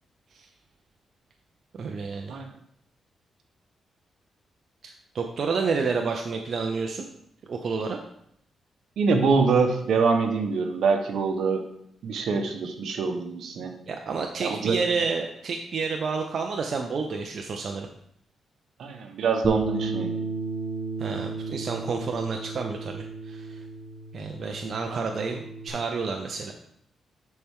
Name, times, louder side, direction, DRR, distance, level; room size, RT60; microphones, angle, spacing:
voice 1, 1.7-2.4 4.8-7.1 7.4-8.0 13.9-17.9 21.0-23.6 24.1-26.5, right 4 dB, 55° right, 3 dB, 0.6 m, -30 dB
voice 2, 9.0-11.6 12.0-13.7 14.4-14.8 18.8-20.3 24.9-25.0, right 4 dB, 75° right, 5 dB, 1.1 m, -25 dB
Bass guitar, 19.4-25.7, right 3 dB, 25° right, 1.3 m, -33 dB
10.5 x 4.5 x 3.7 m, 0.71 s
cardioid pair, 115°, 0 cm